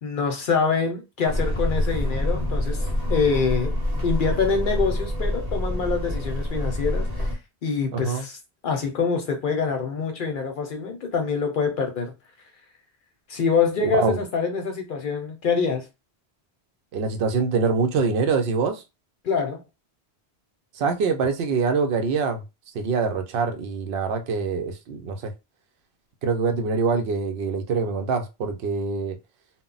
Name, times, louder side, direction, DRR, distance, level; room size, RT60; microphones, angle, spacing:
voice 1, 0.0-3.8 4.0-8.4 8.6-12.1 13.3-15.8 19.2-19.6, left 5 dB, 60° left, 0.7 m, -25 dB
sound 1, 1.3-7.3, left 1 dB, 40° right, 0.8 m, -26 dB
voice 2, 7.9-8.3 13.9-14.2 16.9-18.8 20.8-22.4 22.7-25.3 26.2-29.2, right 5 dB, 70° right, 0.8 m, -24 dB
2.2 x 2.0 x 3.8 m
omnidirectional pair, 1.1 m